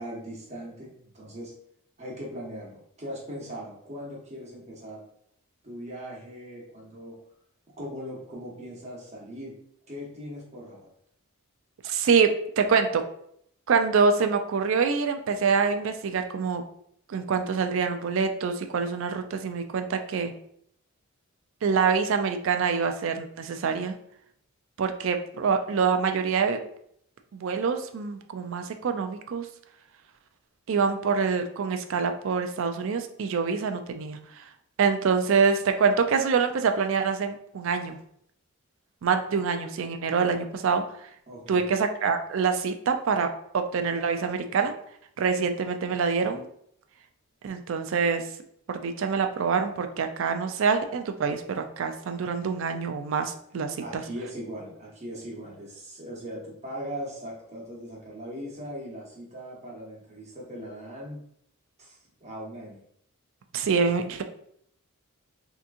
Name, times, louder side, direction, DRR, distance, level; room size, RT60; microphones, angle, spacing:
voice 1, 0.0-1.5 2.0-5.0 5.6-7.2 7.8-9.6 9.9-10.9 41.3-41.7 53.8-61.2 61.8-62.8, equal, 30° right, -3 dB, 1.0 m, -39 dB
voice 2, 11.8-13.0 13.7-16.6 17.1-20.3 21.6-23.9 24.8-26.6 27.3-29.5 30.7-34.4 34.8-38.0 39.0-40.8 41.5-44.7 45.2-46.4 47.4-48.2 48.7-54.0 63.5-64.2, right 5 dB, 60° right, 7 dB, 0.4 m, -25 dB
3.5 x 2.8 x 2.5 m, 0.69 s
head